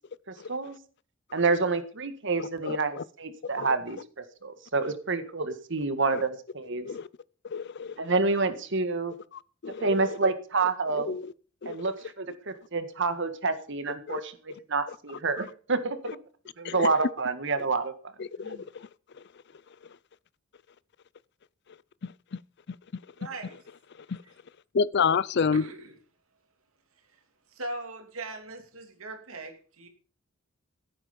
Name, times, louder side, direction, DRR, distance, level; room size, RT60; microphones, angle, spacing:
voice 1, 1.3-4.0 4.4-6.9 8.0-9.1 9.8-11.2 11.6-16.0 16.6-18.1 18.4-18.6, right 3 dB, 60° right, 1.7 m, -28 dB
voice 2, 2.7-3.0 3.6-3.7 6.9-7.1 7.5-7.9 9.6-10.1 11.0-11.3 11.6-11.7 14.1-14.2 16.6-16.9 18.2-18.6 24.1-24.2 24.7-25.6, left 5 dB, 50° left, 0.5 m, -28 dB
voice 3, 23.2-23.6 24.2-24.3 25.5-26.0 27.1-27.2 27.5-29.9, right 2 dB, 75° right, 2.9 m, -40 dB
15.5 x 9.0 x 5.3 m
head